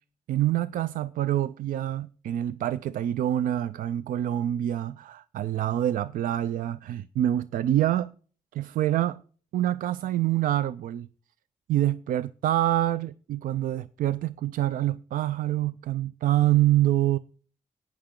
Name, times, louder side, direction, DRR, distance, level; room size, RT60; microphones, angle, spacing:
voice 1, 0.3-8.1 8.5-9.2 9.5-11.1 11.7-17.2, right 13 dB, 85° right, 0.4 m, -26 dB
18.0 x 6.1 x 3.7 m
cardioid pair, 55°, 14 cm